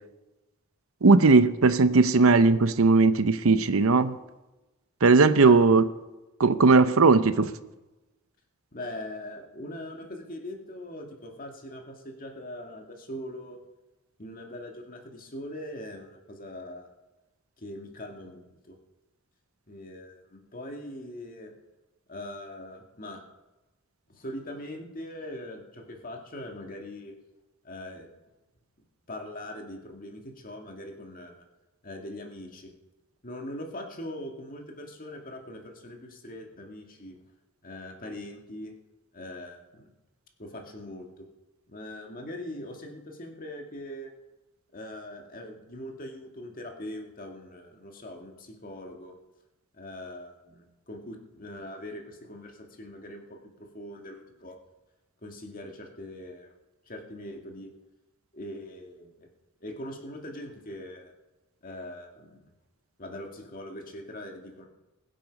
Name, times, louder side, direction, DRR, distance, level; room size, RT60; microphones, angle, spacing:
voice 1, 1.0-4.2 5.0-5.8 6.4-7.5, right 3 dB, 80° right, 12 dB, 0.7 m, -18 dB
voice 2, 8.7-13.6 14.2-16.9 17.6-18.8 19.7-21.5 22.1-23.2 24.1-27.1 27.6-28.1 29.1-31.4 31.8-32.7 33.2-37.2 37.6-38.7 39.1-39.9 40.4-41.3 41.7-44.1 44.7-49.2 49.7-54.6 55.2-56.5 56.9-57.7 58.3-59.3 59.6-61.1 61.6-62.5 63.0-64.7, left 1 dB, 40° left, 2 dB, 2.1 m, -41 dB
21.5 x 7.7 x 5.3 m, 1.1 s
head